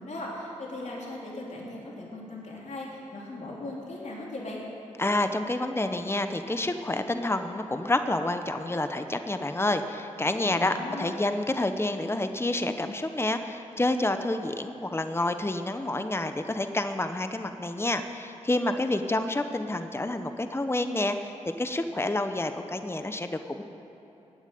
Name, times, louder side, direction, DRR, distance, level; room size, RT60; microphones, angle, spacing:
voice 1, 0.0-4.6 10.4-11.1, left 2 dB, 65° left, -4 dB, 3.3 m, -38 dB
voice 2, 5.0-23.6, left 2 dB, 20° left, 8 dB, 1.0 m, -28 dB
15.5 x 9.4 x 9.4 m, 3.0 s
cardioid pair, 45°, 13 cm